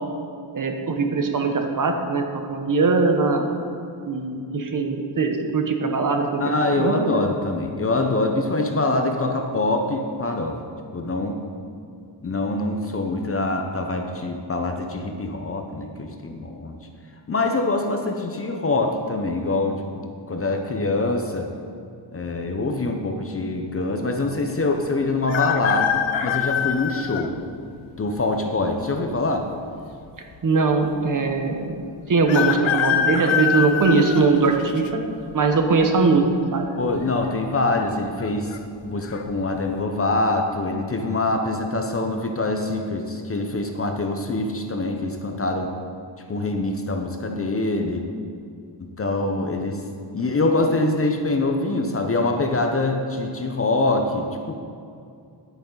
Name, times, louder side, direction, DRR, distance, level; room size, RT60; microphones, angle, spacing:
voice 1, 0.5-3.5 4.0-7.1 30.4-31.8 32.1-35.0 35.3-36.7, right 4 dB, 45° right, 4 dB, 0.9 m, -21 dB
voice 2, 6.4-10.6 10.9-11.4 12.2-16.8 17.3-21.5 22.1-27.4 28.0-29.5 36.7-38.6 38.8-45.7 46.3-48.1 48.8-49.8 50.1-54.6, left 2 dB, 30° left, 4 dB, 0.6 m, -24 dB
sound 1, 25.3-27.3 28.0-28.1 29.2-29.8 30.1-30.2 30.4-30.5 32.3-34.9 35.4-35.8 37.0-37.3 37.6-37.7 38.2-38.6 39.0-39.2, left 8 dB, 85° left, 0.6 m, -24 dB
10.5 x 8.9 x 3.8 m, 2.4 s
wide cardioid pair, 170°, 45 cm